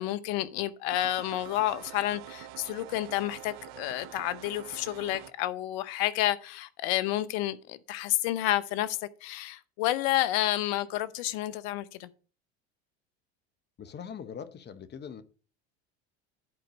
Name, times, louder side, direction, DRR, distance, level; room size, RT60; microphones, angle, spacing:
voice 1, 0.0-12.1, left 14 dB, 70° left, 0.9 m, -30 dB
sound 1, 0.9-5.3, right 13 dB, 70° right, 1.0 m, -46 dB
voice 2, 13.8-15.2, left 7 dB, 30° left, 1.0 m, -41 dB
11.0 x 4.5 x 5.1 m
supercardioid pair, 90°, 33 cm